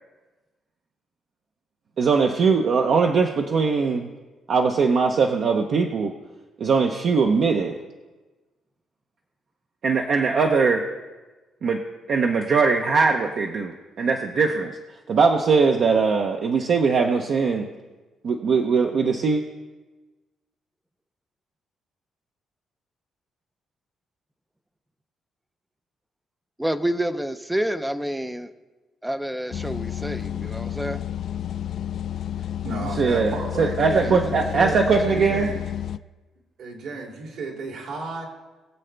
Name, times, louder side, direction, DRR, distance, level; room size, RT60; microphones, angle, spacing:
voice 1, 2.0-4.1 4.5-6.1 6.6-7.8 9.8-10.9 11.6-11.8 12.1-14.8 15.1-17.7 18.2-19.4 33.0-35.5, right 5 dB, 50° right, 3 dB, 0.7 m, -21 dB
voice 2, 26.6-28.5 29.0-31.0 34.0-34.3, right 1 dB, 5° right, 11 dB, 0.5 m, -28 dB
sound 1, 29.5-36.0, left 10 dB, 50° left, 0.3 m, -31 dB
voice 3, 32.6-35.6 36.6-38.2, right 3 dB, 65° right, 0 dB, 2.7 m, -33 dB
21.5 x 7.6 x 3.4 m, 1.2 s
cardioid pair, 145°, 0 cm